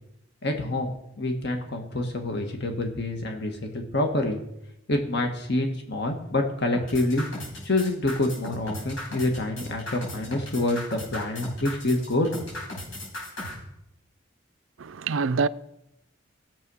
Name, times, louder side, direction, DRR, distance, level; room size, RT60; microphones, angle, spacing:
voice 1, 0.4-4.4 4.9-7.2 7.6-12.3, left 2 dB, 60° left, 1.8 m, -27 dB
sound 1, 6.7-13.5, left 1 dB, 85° left, 6.1 m, -37 dB
voice 2, 14.8-15.5, right 5 dB, 85° right, 0.5 m, -25 dB
17.5 x 7.6 x 5.6 m
head